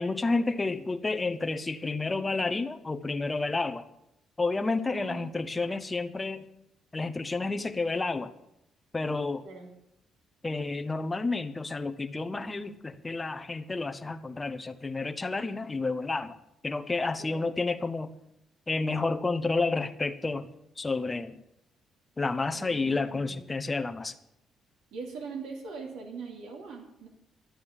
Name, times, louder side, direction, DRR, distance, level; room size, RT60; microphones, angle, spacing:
voice 1, 0.0-3.9 4.4-6.4 6.9-8.3 8.9-9.4 10.4-16.4 16.6-18.1 18.7-20.5 20.8-21.4 22.2-24.1, left 3 dB, 20° left, 7 dB, 0.9 m, -30 dB
voice 2, 4.9-5.4 9.4-9.7 17.2-17.5 22.5-23.4 24.9-27.1, right 5 dB, 85° right, 0 dB, 2.6 m, -42 dB
11.5 x 9.2 x 7.3 m, 0.82 s
cardioid pair, 90°, 0 cm